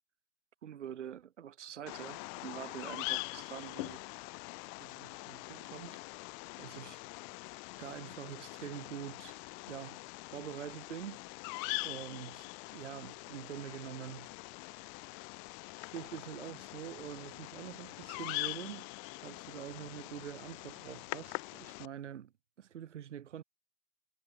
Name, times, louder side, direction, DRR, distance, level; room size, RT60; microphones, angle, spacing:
voice 1, 0.6-4.0 4.8-6.0 6.6-7.0 7.8-9.4 9.7-10.0 10.3-14.3 14.7-14.8 15.9-18.9 19.2-22.3 22.6-23.4, right 9 dB, 75° right, 1.3 m, -45 dB
Bird vocalization bird call bird song, 1.9-21.9, left 40 dB or more, 35° left, 0.6 m, -43 dB
hypercardioid pair, 105°, 36 cm